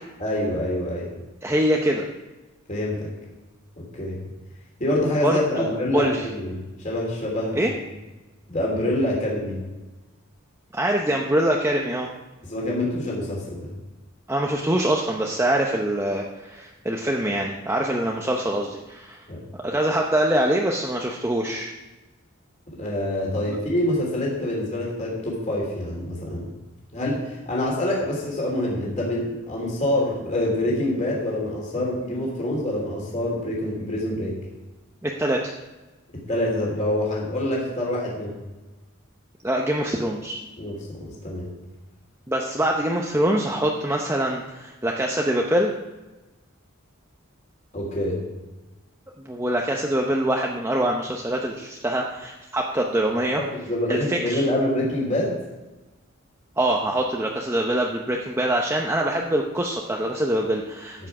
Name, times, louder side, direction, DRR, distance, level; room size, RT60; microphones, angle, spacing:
voice 1, 0.2-1.1 2.7-3.1 3.8-4.2 4.8-6.6 6.8-7.6 8.5-9.6 12.4-13.7 19.3-19.4 22.8-26.5 26.9-34.3 36.3-38.3 40.6-41.5 47.7-48.2 53.5-55.4, left 1 dB, 35° left, -3 dB, 3.0 m, -26 dB
voice 2, 1.4-2.0 5.2-6.3 7.5-7.7 10.7-12.1 14.3-19.2 19.6-21.7 35.0-35.5 39.4-40.4 42.3-45.7 49.2-53.4 53.9-54.4 56.6-61.1, right 1 dB, 15° right, 0 dB, 0.7 m, -24 dB
12.5 x 8.3 x 4.8 m, 1.1 s
head